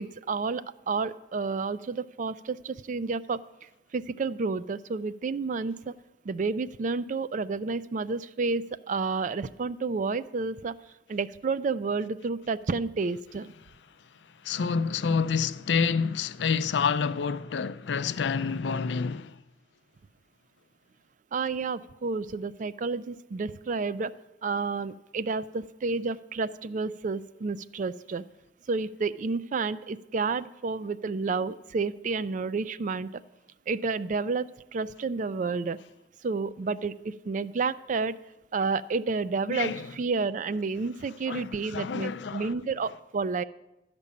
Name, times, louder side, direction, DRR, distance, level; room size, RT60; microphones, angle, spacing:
voice 1, 0.0-3.4 3.9-5.9 6.2-10.8 11.1-13.5 21.3-24.1 24.4-28.2 28.7-33.2 33.7-35.8 36.2-38.2 38.5-43.4, right 4 dB, 45° right, 0.4 m, -30 dB
voice 2, 14.4-19.4 39.5-39.9 41.3-42.5, left 5 dB, 85° left, 0.5 m, -28 dB
12.5 x 5.3 x 8.4 m
head